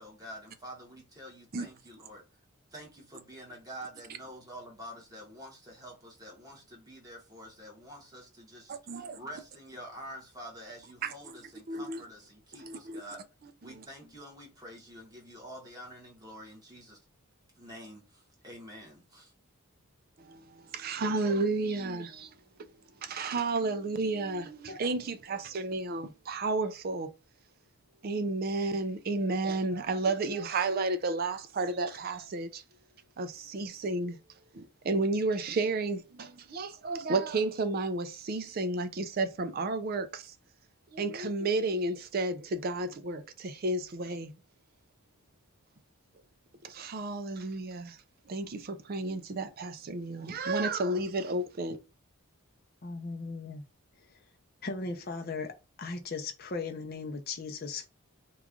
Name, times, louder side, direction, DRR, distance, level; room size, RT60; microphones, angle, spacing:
voice 1, 0.0-2.2 2.7-13.2 13.6-17.0 17.5-19.3, equal, 15° right, 1.2 m, -47 dB
voice 2, 8.7-9.2 11.0-11.4 11.7-12.0 12.6-13.0 13.6-13.8 20.2-22.3 23.0-27.1 28.0-32.6 33.2-34.2 34.5-40.3 40.9-44.3 46.6-48.0 48.3-51.8, right 3 dB, 45° right, 0.4 m, -32 dB
voice 3, 52.8-53.6 54.6-55.5 55.8-57.9, left 4 dB, 45° left, 0.5 m, -37 dB
3.0 x 2.4 x 3.6 m
head